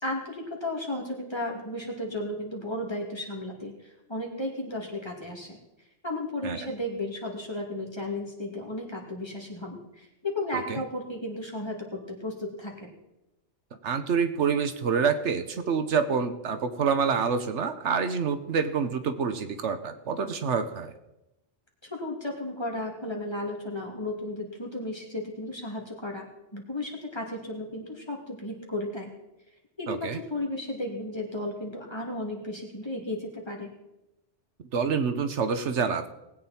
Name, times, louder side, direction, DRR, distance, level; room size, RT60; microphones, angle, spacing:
voice 1, 0.0-5.6 6.0-12.9 21.9-29.1 29.8-33.7, left 1 dB, 20° left, 0 dB, 2.6 m, -34 dB
voice 2, 13.8-20.9 29.9-30.2 34.7-36.1, right 6 dB, 75° right, 9 dB, 1.2 m, -27 dB
19.5 x 8.8 x 4.3 m, 0.92 s
omnidirectional pair, 1.2 m